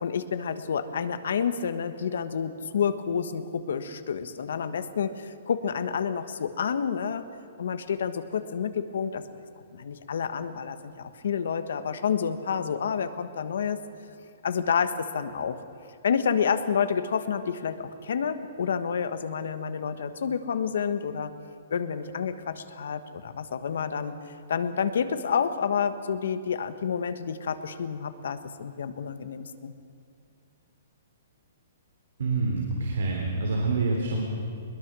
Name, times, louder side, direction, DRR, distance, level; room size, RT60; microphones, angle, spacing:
voice 1, 0.0-7.2 7.6-9.2 9.7-13.8 14.4-15.6 16.0-21.3 21.7-24.1 24.5-29.7, left 7 dB, 70° left, 10 dB, 1.3 m, -29 dB
voice 2, 32.2-34.2, right 3 dB, 85° right, -1 dB, 3.6 m, -27 dB
22.0 x 21.5 x 6.2 m, 2.4 s
hypercardioid pair, 170°, 0 cm